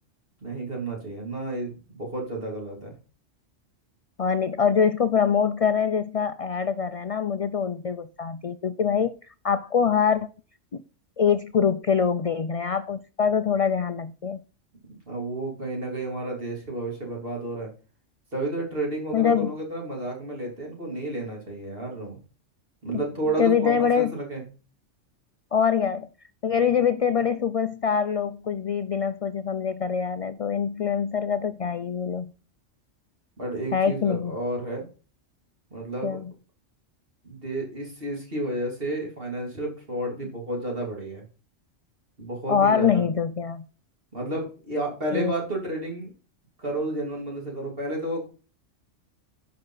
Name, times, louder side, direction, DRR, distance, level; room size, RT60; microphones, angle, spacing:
voice 1, 0.4-2.9 14.9-17.7 18.3-22.2 22.8-24.5 33.4-34.9 35.7-36.2 37.2-41.2 42.2-43.0 44.1-46.1 46.6-48.3, right 1 dB, 50° right, 3.5 m, -31 dB
voice 2, 4.2-9.2 9.4-10.3 10.7-10.8 11.2-14.4 19.1-19.5 22.9-23.0 23.4-24.1 25.5-26.1 26.4-32.3 33.7-34.4 36.0-36.3 42.5-43.7 45.1-45.3, left 7 dB, 60° left, 0.3 m, -24 dB
11.0 x 5.6 x 3.9 m
omnidirectional pair, 1.3 m